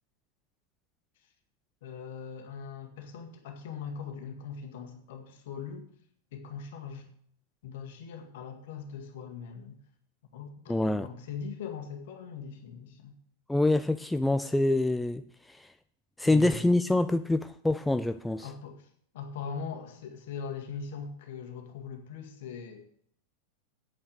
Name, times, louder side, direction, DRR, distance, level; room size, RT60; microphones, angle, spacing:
voice 1, 1.8-5.9 6.3-7.1 7.6-9.8 10.3-13.1 16.2-16.6 18.4-22.8, left 6 dB, 55° left, 4 dB, 1.9 m, -41 dB
voice 2, 10.7-11.1 13.5-15.7 16.2-18.5, left 2 dB, 5° left, 10 dB, 0.4 m, -26 dB
8.9 x 8.7 x 6.6 m, 0.65 s
figure-of-eight pair, 90°, 0 cm